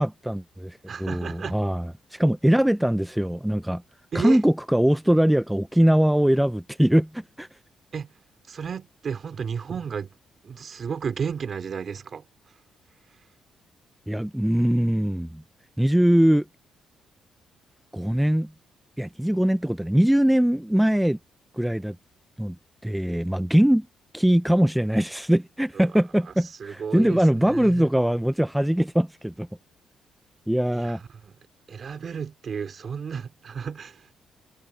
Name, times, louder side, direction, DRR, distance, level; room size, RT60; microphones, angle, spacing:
voice 1, 0.0-3.8 4.1-7.5 14.1-15.4 15.8-16.4 17.9-18.5 19.0-21.2 21.5-22.0 22.4-22.6 22.8-23.9 24.1-29.5 30.5-31.0, equal, 5° right, 0.5 m, -22 dB
voice 2, 0.9-1.6 4.1-4.4 7.9-8.1 8.5-10.1 10.4-12.2 25.7-25.9 26.3-26.4 26.6-27.9 30.7-31.3 31.7-34.1, right 6 dB, 50° right, 2.8 m, -33 dB
cardioid pair, 90°, 0 cm